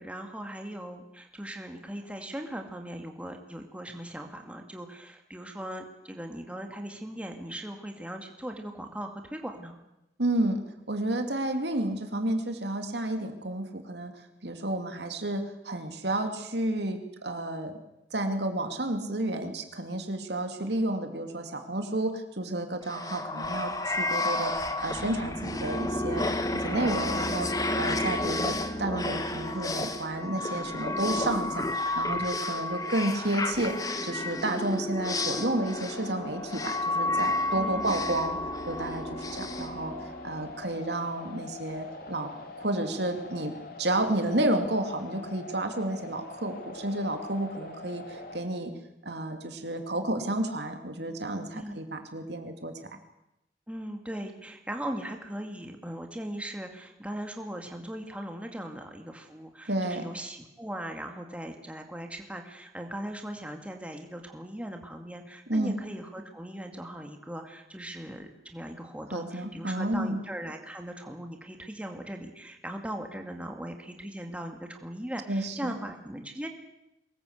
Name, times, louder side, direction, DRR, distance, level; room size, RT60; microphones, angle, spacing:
voice 1, 0.0-9.8 26.2-26.3 37.6-37.9 51.5-51.8 53.7-76.5, right 1 dB, 5° right, 4 dB, 2.2 m, -39 dB
voice 2, 10.2-10.6 10.9-14.1 14.4-17.7 18.1-26.3 26.5-27.5 27.8-33.8 34.0-38.4 38.7-39.9 40.2-42.3 42.6-43.5 43.8-48.7 49.0-52.7 59.7-60.0 65.5-65.8 69.1-70.2 75.3-75.7, right 1 dB, 70° right, 6 dB, 2.8 m, -31 dB
sound 1, 22.9-40.5, left 2 dB, 20° left, 1.5 m, -31 dB
sound 2, 35.1-48.4, left 3 dB, 55° left, 2.9 m, -44 dB
23.5 x 20.0 x 8.2 m, 0.89 s
head